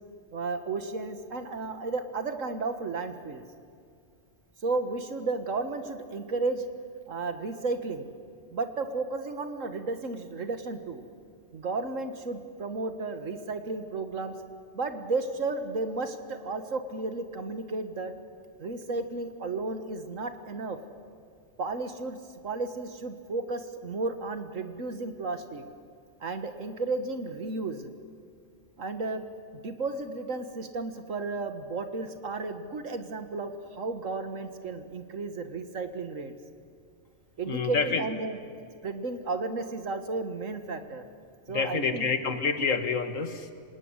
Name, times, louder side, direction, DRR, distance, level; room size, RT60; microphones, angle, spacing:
voice 1, 0.3-3.4 4.6-6.6 7.1-8.1 8.5-11.0 11.5-14.3 14.7-18.1 18.6-20.8 21.6-22.2 22.4-25.6 26.2-27.9 28.8-29.2 29.5-36.4 37.4-38.4 38.8-41.1 41.5-42.1, right 3 dB, 85° right, 8 dB, 2.0 m, -33 dB
voice 2, 37.5-38.1 41.5-43.5, left 5 dB, 85° left, 9 dB, 2.0 m, -28 dB
27.0 x 18.5 x 9.8 m, 2.2 s
omnidirectional pair, 1.3 m